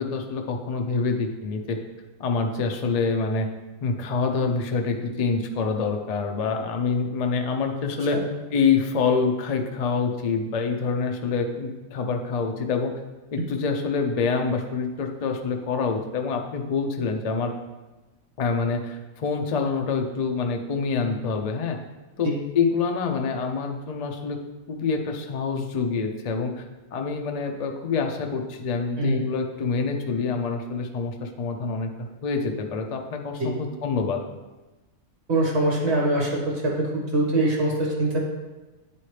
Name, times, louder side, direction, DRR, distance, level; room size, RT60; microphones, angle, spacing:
voice 1, 0.0-1.8 2.2-3.5 3.8-8.2 8.5-13.0 13.3-17.5 18.4-21.8 22.2-24.4 24.7-26.6 26.9-34.2, left 4 dB, 50° left, 4 dB, 0.4 m, -26 dB
voice 2, 35.3-38.2, right 1 dB, 55° right, -3 dB, 1.7 m, -23 dB
9.0 x 4.2 x 3.3 m, 1.1 s
omnidirectional pair, 1.4 m